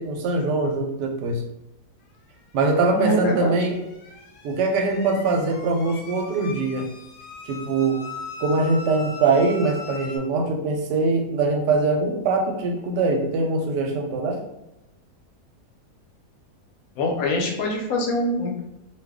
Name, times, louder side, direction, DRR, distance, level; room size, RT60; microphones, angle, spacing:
voice 1, 0.0-1.4 2.5-3.8 4.4-6.9 7.5-8.0 8.4-14.4, right 3 dB, 90° right, 3 dB, 1.2 m, -22 dB
sound 1, 2.6-10.2, left 3 dB, 90° left, 1.2 m, -40 dB
voice 2, 2.9-3.6 17.0-18.6, left 1 dB, 70° left, 0 dB, 0.9 m, -24 dB
2.6 x 2.3 x 3.5 m, 0.90 s
omnidirectional pair, 1.8 m